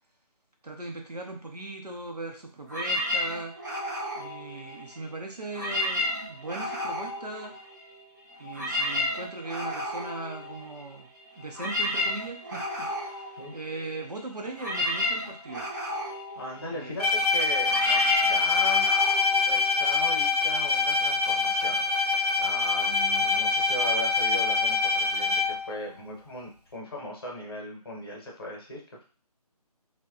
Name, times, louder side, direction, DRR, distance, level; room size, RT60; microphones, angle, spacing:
voice 1, 0.6-3.5 4.2-7.6 8.4-11.1 11.4-15.7 16.7-17.0, right 2 dB, 80° right, 2 dB, 0.7 m, -39 dB
sound 1, 2.7-5.1 5.5-8.0 8.3-20.2, left 1 dB, 30° right, 0.5 m, -32 dB
voice 2, 16.3-18.0 18.3-18.9 19.4-29.0, left 1 dB, 40° left, -1 dB, 0.8 m, -38 dB
Bowed string instrument, 17.0-25.7, left 4 dB, 80° left, 0.6 m, -24 dB
2.8 x 2.2 x 2.3 m, 0.39 s
figure-of-eight pair, 155°, 20 cm